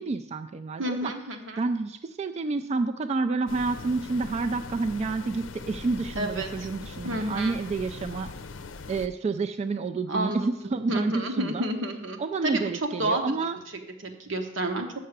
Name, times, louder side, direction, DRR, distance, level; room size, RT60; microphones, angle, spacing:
voice 1, 0.0-1.1 1.6-8.3 8.9-11.6 12.2-13.6, right 3 dB, 35° right, 8 dB, 0.3 m, -29 dB
voice 2, 0.8-1.6 6.2-6.7 7.0-7.6 10.1-12.6 13.0-13.2 14.0-14.9, right 1 dB, 85° right, 4 dB, 1.1 m, -30 dB
sound 1, 3.5-9.1, left 4 dB, 85° left, 0.6 m, -41 dB
6.6 x 5.8 x 6.6 m, 0.83 s
head